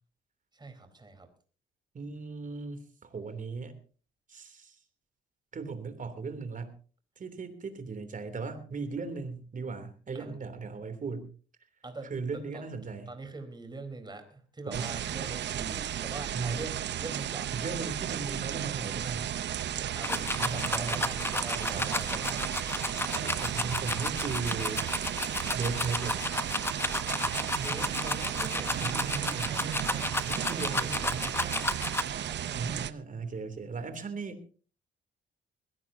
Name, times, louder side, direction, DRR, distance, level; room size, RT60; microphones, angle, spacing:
voice 1, 0.5-1.3 10.1-10.4 11.8-12.6 13.1-17.5 20.0-22.5 23.0-23.5 27.5-31.7 32.1-32.9, right 2 dB, 20° right, 7 dB, 4.2 m, -44 dB
voice 2, 1.9-3.7 4.3-4.8 5.5-6.7 7.2-11.3 12.1-13.1 14.7-14.9 16.3-16.7 17.5-19.4 20.2-21.1 21.5-22.3 23.1-24.9 25.5-26.2 28.7-29.6 30.2-31.2 32.5-34.4, right 4 dB, 40° right, 10 dB, 3.2 m, -37 dB
sound 1, 14.7-32.9, right 10 dB, 60° right, 0.8 m, -34 dB
sound 2, 20.0-32.0, left 2 dB, 10° left, 1.3 m, -32 dB
21.0 x 17.0 x 2.8 m, 0.38 s
cardioid pair, 90°, 20 cm